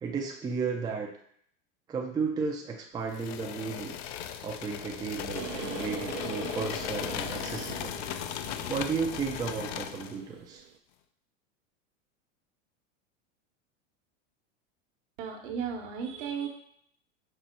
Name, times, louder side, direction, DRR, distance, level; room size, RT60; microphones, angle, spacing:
voice 1, 0.0-1.1 1.9-4.0 4.4-7.9 8.7-10.6, right 5 dB, 10° right, 0 dB, 0.4 m, -34 dB
sound 1, 3.1-10.2, left 10 dB, 60° left, 0.4 m, -37 dB
sound 2, 5.3-10.8, right 10 dB, 80° right, 0.6 m, -43 dB
voice 2, 15.2-16.5, right 7 dB, 65° right, 4 dB, 1.0 m, -34 dB
5.4 x 2.0 x 4.4 m, 0.65 s
supercardioid pair, 120°, 37 cm